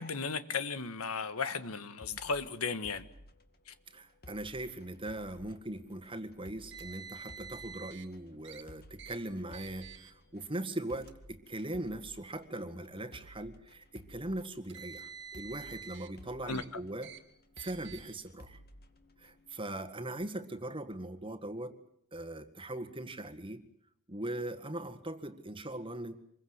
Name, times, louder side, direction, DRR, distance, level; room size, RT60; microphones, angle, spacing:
voice 1, 0.0-3.0 16.4-16.6, left 5 dB, 90° left, 12 dB, 1.5 m, -35 dB
sound 1, 2.0-19.8, left 1 dB, 45° left, 2.2 m, -56 dB
voice 2, 3.9-17.1 17.6-18.6 19.2-21.8 22.1-23.6 24.1-26.2, right 1 dB, 25° right, 9 dB, 1.8 m, -40 dB
Car, 6.7-8.1 8.4-8.6 9.0-9.2 9.5-10.1 10.9-11.1 12.1-12.2 14.5-16.1 16.5-16.7 17.0-17.2 17.6-18.1, right 8 dB, 55° right, 2.2 m, -48 dB
26.5 x 22.0 x 8.1 m, 0.69 s
head